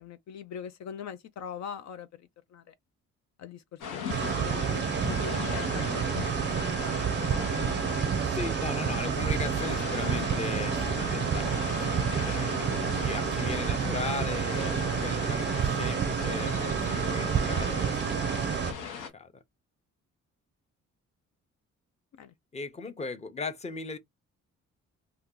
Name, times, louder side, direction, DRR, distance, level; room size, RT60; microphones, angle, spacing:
voice 1, 0.0-2.7 3.4-7.2 22.1-22.3 22.8-22.9, left 7 dB, 65° left, 0.5 m, -43 dB
sound 1, 3.8-19.1, left 6 dB, 90° left, 1.0 m, -37 dB
sound 2, 4.1-18.7, right 8 dB, 40° right, 0.5 m, -29 dB
voice 2, 8.2-19.4 22.5-24.0, left 4 dB, 20° left, 0.7 m, -38 dB
2.7 x 2.4 x 3.7 m
cardioid pair, 90°, 30 cm